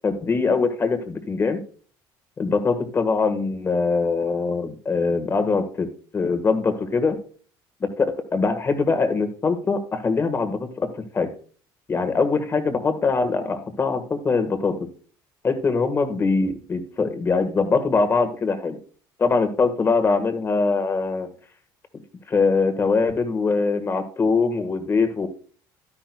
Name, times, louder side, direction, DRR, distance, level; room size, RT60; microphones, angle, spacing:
voice 1, 0.0-1.6 2.4-7.2 7.8-11.3 11.9-14.8 15.4-18.8 19.2-21.3 22.3-25.3, left 4 dB, 30° left, 8 dB, 1.6 m, -22 dB
11.5 x 10.5 x 2.3 m, 0.41 s
cardioid pair, 115°, 9 cm